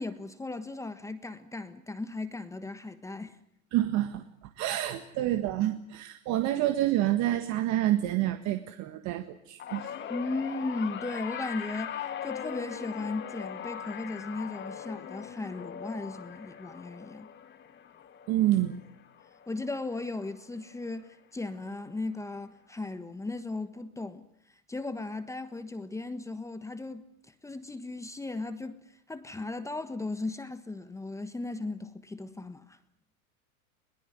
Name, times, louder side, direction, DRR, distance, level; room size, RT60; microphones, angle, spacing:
voice 1, 0.0-3.4 10.1-17.3 19.5-24.3 24.7-27.1 27.4-28.8 29.1-32.8, left 2 dB, 5° left, 1.3 m, -36 dB
voice 2, 3.7-4.2 4.6-9.9 18.3-18.8, right 13 dB, 40° right, 1.7 m, -28 dB
sound 1, 9.6-20.0 20.4-20.8 21.9-22.0, left 8 dB, 25° left, 2.3 m, -40 dB
22.0 x 19.5 x 9.7 m
supercardioid pair, 135°, 42 cm